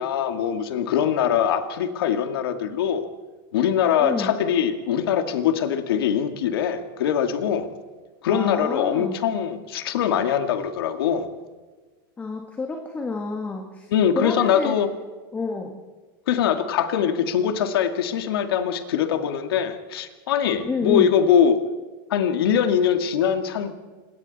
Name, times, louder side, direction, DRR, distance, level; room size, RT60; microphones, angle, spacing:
voice 1, 0.0-3.1 3.5-7.7 8.2-11.3 13.9-14.9 16.3-21.6 22.1-23.7, left 8 dB, 85° left, 7 dB, 2.2 m, -22 dB
voice 2, 4.0-4.3 8.3-9.2 12.2-14.8 15.3-15.8 20.6-21.1, left 4 dB, 15° left, 3 dB, 1.7 m, -29 dB
27.5 x 22.0 x 4.2 m, 1.4 s
supercardioid pair, 155°, 12 cm